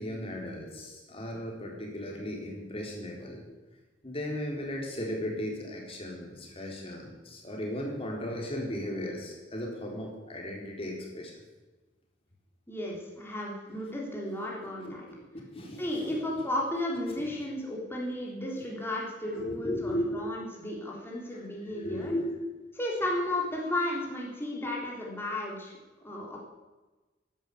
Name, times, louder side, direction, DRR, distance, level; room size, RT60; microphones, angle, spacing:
voice 1, 0.0-3.5 4.0-11.3 14.8-16.2 17.2-17.3 19.3-20.0 21.3-22.4, equal, 30° left, 0 dB, 4.0 m, -36 dB
voice 2, 12.7-15.1 15.8-22.1 22.8-25.7 26.0-26.4, left 1 dB, 15° left, -3 dB, 3.5 m, -34 dB
12.0 x 11.0 x 8.5 m, 1.2 s
head